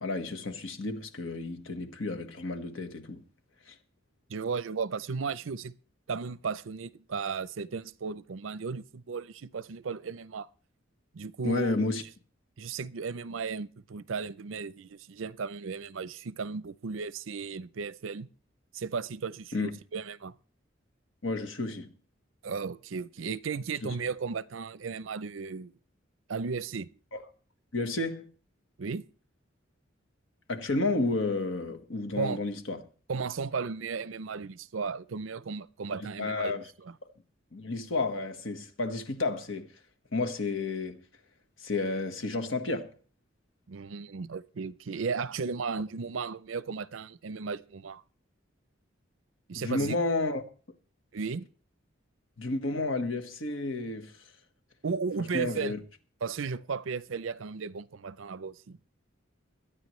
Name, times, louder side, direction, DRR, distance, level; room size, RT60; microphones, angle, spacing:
voice 1, 0.0-3.2 3.7-3.8 11.4-12.0 19.5-19.8 21.2-21.9 23.8-24.0 27.1-27.2 27.7-28.3 30.5-32.8 36.0-36.6 37.5-39.7 40.1-41.0 41.6-42.9 49.5-50.4 52.4-54.1 55.3-55.8, left 3 dB, 75° left, 1.5 m, -31 dB
voice 2, 4.3-5.7 6.1-10.5 11.1-11.9 12.6-18.3 18.7-20.3 22.4-25.7 26.3-26.9 28.8-29.1 32.2-32.4 33.1-36.9 43.7-48.0 49.5-50.0 51.1-51.5 54.8-55.8 56.2-58.8, right 5 dB, 80° right, 0.6 m, -35 dB
23.0 x 9.7 x 3.2 m
head